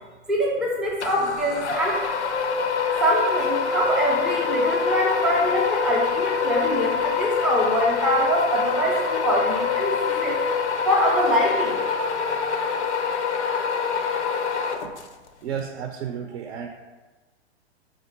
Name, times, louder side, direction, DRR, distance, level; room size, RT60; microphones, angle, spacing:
voice 1, 0.3-2.0 3.0-10.4 10.8-11.8, equal, ahead, -4 dB, 0.3 m, -24 dB
sound 1, 1.0-15.3, left 5 dB, 85° left, 0.5 m, -25 dB
voice 2, 15.4-16.7, right 8 dB, 70° right, 4 dB, 0.5 m, -32 dB
4.1 x 2.4 x 4.3 m, 1.2 s
figure-of-eight pair, 105°, 34 cm